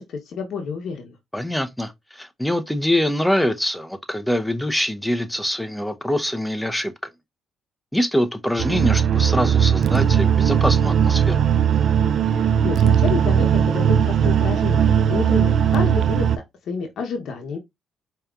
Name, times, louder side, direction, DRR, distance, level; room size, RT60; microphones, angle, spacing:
voice 1, 0.0-1.2 12.3-16.3 16.7-17.6, left 5 dB, 70° left, 0.8 m, -29 dB
voice 2, 1.3-7.1 7.9-11.4, left 1 dB, 5° left, 0.6 m, -24 dB
sound 1, 8.6-16.4, right 8 dB, 60° right, 0.3 m, -18 dB
4.9 x 2.9 x 2.3 m
cardioid pair, 85°, 0 cm